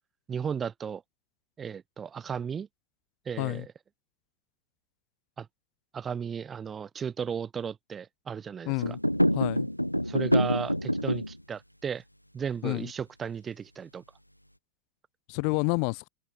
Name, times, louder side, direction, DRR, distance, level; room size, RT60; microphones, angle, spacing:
voice 1, 0.3-1.0 1.6-2.7 3.2-3.6 5.4-5.5 5.9-8.7 10.0-12.0 12.3-14.0, right 7 dB, 20° right, 3.2 m, -35 dB
voice 2, 8.6-9.0 9.3-9.7 12.6-12.9 15.3-16.1, left 40 dB or more, 45° left, 3.2 m, -29 dB
sound 1, 8.8-11.4, equal, 90° left, 0.9 m, -26 dB
figure-of-eight pair, 90°, 0 cm